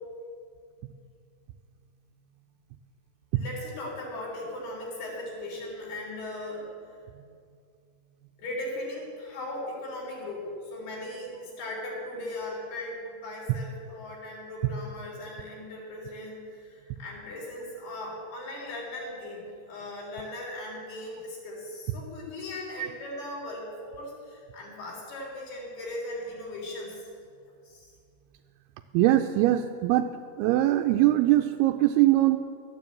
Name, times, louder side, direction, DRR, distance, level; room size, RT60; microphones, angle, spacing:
voice 1, 3.4-6.7 8.4-27.0 27.7-27.9, left 1 dB, 90° left, -3 dB, 5.5 m, -38 dB
voice 2, 28.9-30.1 30.4-32.4, right 15 dB, 90° right, 4 dB, 2.5 m, -22 dB
12.5 x 9.5 x 8.5 m, 2.2 s
omnidirectional pair, 4.4 m